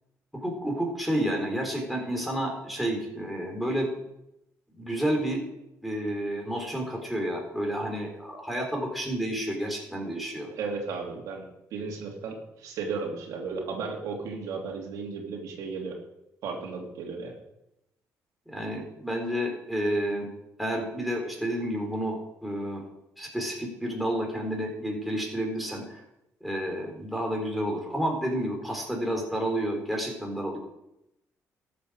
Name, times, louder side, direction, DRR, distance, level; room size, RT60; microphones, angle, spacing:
voice 1, 0.3-3.9 4.8-5.4 5.8-10.5 18.5-20.3 20.6-22.8 23.2-26.0 26.4-30.6, right 1 dB, ahead, 0 dB, 4.2 m, -30 dB
voice 2, 10.6-11.4 11.7-16.0 16.4-17.4, right 4 dB, 85° right, 0 dB, 3.1 m, -34 dB
13.5 x 8.3 x 6.5 m, 0.85 s
cardioid pair, 110°, 6 cm